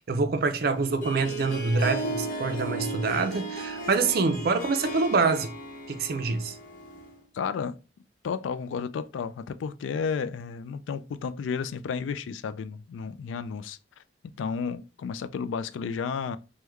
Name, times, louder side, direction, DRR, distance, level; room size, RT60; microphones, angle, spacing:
voice 1, 0.0-5.5 5.9-6.6, right 4 dB, 55° right, 0.4 m, -26 dB
Harp, 0.7-7.2, right 1 dB, 45° left, 0.9 m, -35 dB
voice 2, 7.3-7.8 8.2-13.8 14.4-16.4, left 6 dB, 85° left, 0.3 m, -32 dB
3.5 x 2.2 x 3.0 m
head